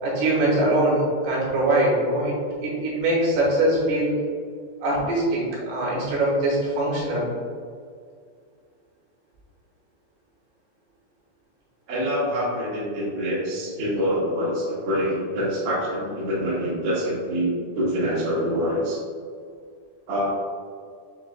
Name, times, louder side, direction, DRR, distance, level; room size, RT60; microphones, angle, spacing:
voice 1, 0.0-2.3 2.6-4.1 4.8-7.3, right 1 dB, 75° right, -6 dB, 2.7 m, -22 dB
voice 2, 11.9-19.0 20.1-20.3, equal, 55° right, -9 dB, 1.6 m, -25 dB
7.0 x 3.1 x 2.3 m, 2.1 s
omnidirectional pair, 5.1 m